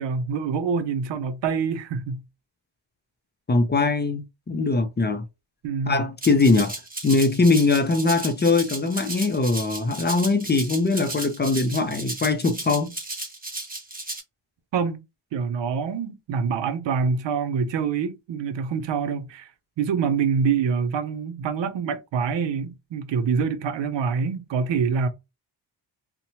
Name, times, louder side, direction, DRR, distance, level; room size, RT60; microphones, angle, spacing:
voice 1, 0.0-2.2 5.6-6.0 14.7-15.0 15.3-19.5 19.8-25.1, right 6 dB, 75° right, 0.7 m, -25 dB
voice 2, 3.5-5.2 5.9-6.8 7.0-12.9, left 3 dB, 25° left, 0.5 m, -21 dB
Rattle (instrument), 6.2-14.2, right 2 dB, 20° right, 1.1 m, -35 dB
2.8 x 2.1 x 2.7 m
cardioid pair, 60°, 45 cm